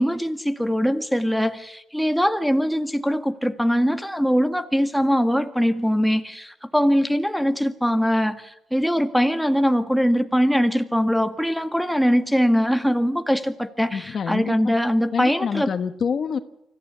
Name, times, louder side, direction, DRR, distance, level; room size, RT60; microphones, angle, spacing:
voice 1, 0.0-15.7, equal, ahead, 10 dB, 1.8 m, -22 dB
voice 2, 13.9-14.6 15.1-16.4, left 6 dB, 50° left, 11 dB, 1.3 m, -26 dB
25.0 x 15.5 x 9.7 m, 0.80 s
cardioid pair, 90°, 0 cm